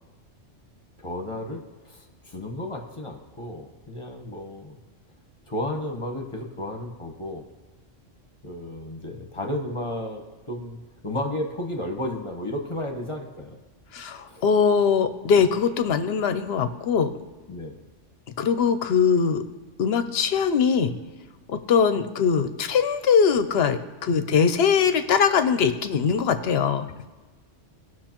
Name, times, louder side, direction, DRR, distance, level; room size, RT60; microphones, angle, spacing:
voice 1, 1.0-4.8 5.5-7.4 8.4-10.8 11.0-13.6 14.3-14.4 17.5-17.8, left 1 dB, 25° left, 2 dB, 1.0 m, -33 dB
voice 2, 13.9-17.1 18.4-19.4 19.8-21.0 21.5-26.9, left 6 dB, 65° left, 10 dB, 0.8 m, -21 dB
18.5 x 6.2 x 3.0 m, 1.3 s
omnidirectional pair, 1.3 m